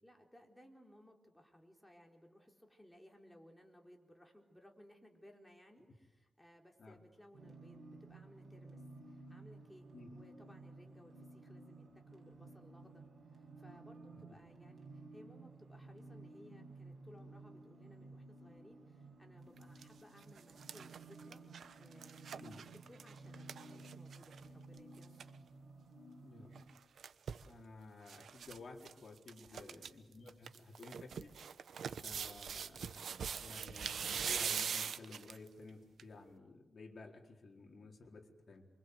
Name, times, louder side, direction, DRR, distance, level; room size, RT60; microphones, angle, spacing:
voice 1, 0.0-9.8 10.1-21.4 21.8-22.5 22.9-25.4 29.5-29.8, equal, 5° left, 1 dB, 4.3 m, -61 dB
sound 1, 7.3-26.7, right 3 dB, 55° right, 8.0 m, -55 dB
sound 2, 19.6-19.8 20.2-24.5 24.8-24.9 25.0-25.3 26.6-27.5 28.1-28.6 28.8-28.9 29.3-29.9 30.3-35.5 36.0-36.1, right 7 dB, 80° right, 1.0 m, -42 dB
voice 2, 26.2-26.5 27.4-31.4 32.0-33.1 33.4-38.7, left 3 dB, 50° left, 1 dB, 4.3 m, -54 dB
28.0 x 24.5 x 8.1 m, 1.1 s
wide cardioid pair, 105°, 0 cm